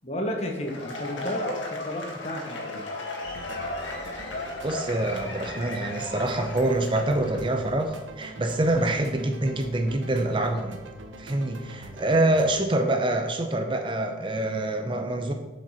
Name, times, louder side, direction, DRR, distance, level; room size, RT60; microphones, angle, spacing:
voice 1, 0.0-2.8, left 1 dB, 35° left, 2 dB, 1.2 m, -32 dB
Cheering / Applause / Crowd, 0.6-7.4, left 2 dB, 75° left, 1.7 m, -36 dB
sound 1, 3.2-12.6, right 1 dB, 80° right, 1.0 m, -44 dB
voice 2, 4.6-10.8 11.2-15.3, right 1 dB, 25° right, 5 dB, 0.6 m, -26 dB
7.5 x 5.2 x 5.6 m, 1.1 s
head